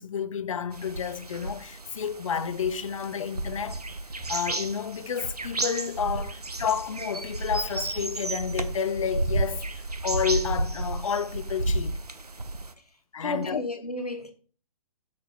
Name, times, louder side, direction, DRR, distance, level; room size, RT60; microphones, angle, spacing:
voice 1, 0.0-3.8 4.3-12.0 13.1-13.6, left 7 dB, 60° left, 0.5 m, -30 dB
sound 1, 0.7-12.7, right 2 dB, 90° right, 0.6 m, -32 dB
voice 2, 13.2-14.3, left 2 dB, 90° left, 1.2 m, -32 dB
6.4 x 4.4 x 3.5 m
figure-of-eight pair, 130°, 19 cm